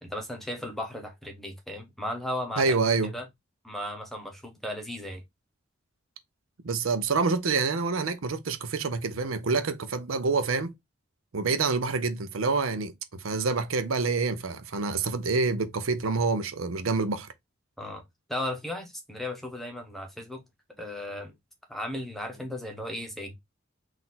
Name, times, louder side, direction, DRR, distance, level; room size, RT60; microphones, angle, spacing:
voice 1, 0.0-2.8 3.0-3.2 3.6-5.2 17.8-18.0 18.3-20.4 20.8-21.3 21.7-23.3, left 1 dB, ahead, 1.0 m, -35 dB
voice 2, 2.6-3.1 6.6-10.7 11.3-17.3, right 4 dB, 75° right, 0.6 m, -27 dB
4.1 x 2.6 x 4.0 m
head